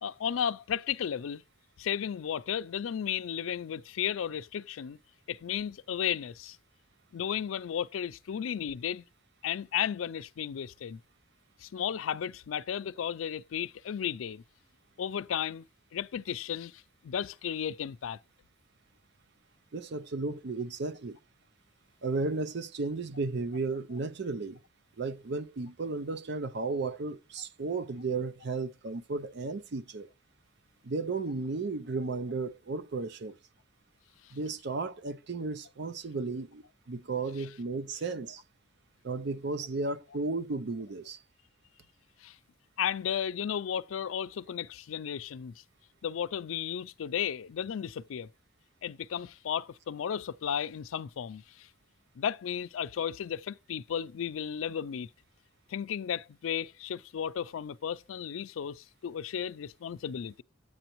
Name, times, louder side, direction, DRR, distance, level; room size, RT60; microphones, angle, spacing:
voice 1, 0.0-1.4 1.8-5.0 5.3-6.6 7.1-9.0 9.4-11.0 11.6-14.4 15.0-15.7 15.9-18.2 42.2-42.4 42.8-45.5 46.0-48.3 48.8-51.7 52.2-55.1 55.7-60.4, left 8 dB, 90° left, 0.4 m, -34 dB
voice 2, 19.7-21.2 22.0-24.6 25.0-30.1 30.8-33.4 34.3-38.4 39.0-41.2, right 3 dB, 60° right, 0.6 m, -34 dB
10.0 x 7.9 x 3.0 m
head